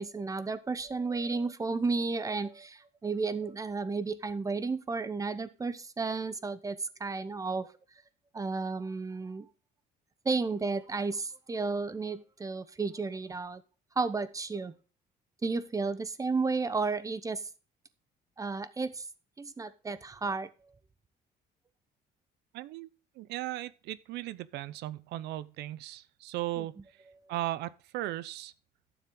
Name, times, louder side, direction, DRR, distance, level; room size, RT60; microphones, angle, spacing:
voice 1, 0.0-7.7 8.3-9.5 10.2-13.6 14.0-14.7 15.4-17.4 18.4-19.1 19.4-20.5 26.6-26.7, right 4 dB, 20° right, 0.9 m, -33 dB
voice 2, 22.5-22.9 23.2-26.7 27.3-28.5, right 15 dB, 80° right, 0.7 m, -37 dB
12.0 x 7.2 x 3.8 m
cardioid pair, 110°, 17 cm